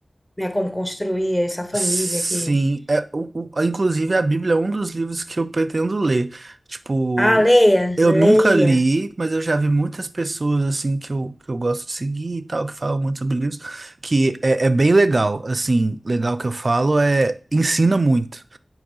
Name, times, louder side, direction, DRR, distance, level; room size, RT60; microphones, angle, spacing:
voice 1, 0.4-2.5 7.2-8.8, equal, 15° left, 1.1 m, -19 dB
voice 2, 1.7-7.5 8.0-18.6, right 2 dB, 50° right, 0.5 m, -21 dB
8.7 x 3.1 x 5.5 m
wide cardioid pair, 60°, 0 cm